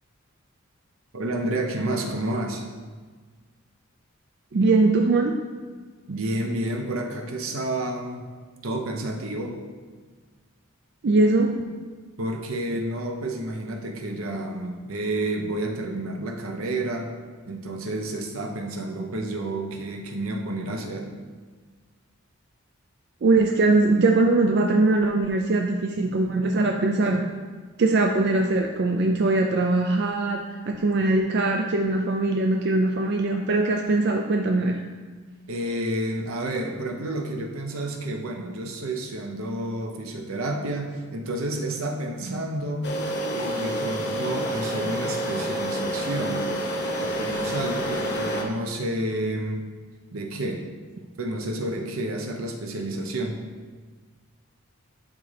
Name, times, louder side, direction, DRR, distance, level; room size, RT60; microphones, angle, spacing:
voice 1, 1.1-2.6 6.1-8.2 8.6-9.6 12.2-17.1 17.4-21.1 35.5-43.0 43.3-46.5 47.0-49.6 50.1-50.7 51.2-53.4, right 1 dB, 75° right, 3 dB, 0.8 m, -30 dB
voice 2, 4.5-5.4 11.0-11.8 23.2-27.3 27.8-34.8 42.3-42.4, right 2 dB, 50° right, 2 dB, 0.4 m, -21 dB
sound 1, 42.8-48.4, equal, 55° left, 0.9 m, -28 dB
11.0 x 3.8 x 3.3 m, 1.5 s
head